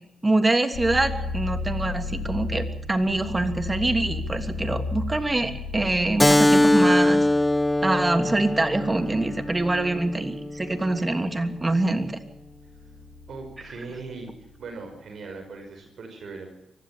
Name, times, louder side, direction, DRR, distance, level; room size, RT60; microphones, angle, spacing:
voice 1, 0.2-7.3 7.8-12.2, right 2 dB, 25° right, 8 dB, 3.1 m, -24 dB
sound 1, 0.7-14.5, left 3 dB, 80° left, 2.7 m, -35 dB
Keyboard (musical), 6.2-11.3, left 1 dB, 15° left, 0.9 m, -22 dB
voice 2, 13.3-14.3 14.6-16.5, right 4 dB, 65° right, 5 dB, 5.3 m, -39 dB
24.0 x 15.5 x 7.5 m, 0.84 s
supercardioid pair, 50°, 0 cm